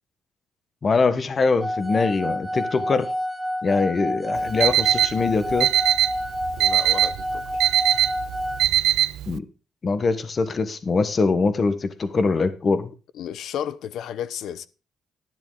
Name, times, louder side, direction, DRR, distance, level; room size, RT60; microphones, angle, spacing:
voice 1, 0.8-3.1 3.6-5.7 9.3-9.4 9.8-12.9, left 4 dB, 40° left, 1.3 m, -23 dB
sound 1, 1.6-8.6, equal, 5° right, 1.0 m, -29 dB
Alarm, 4.4-9.4, right 12 dB, 85° right, 0.4 m, -22 dB
voice 2, 6.6-7.6 13.1-14.7, left 9 dB, 75° left, 0.8 m, -33 dB
11.0 x 10.5 x 4.0 m
cardioid pair, 90°, 0 cm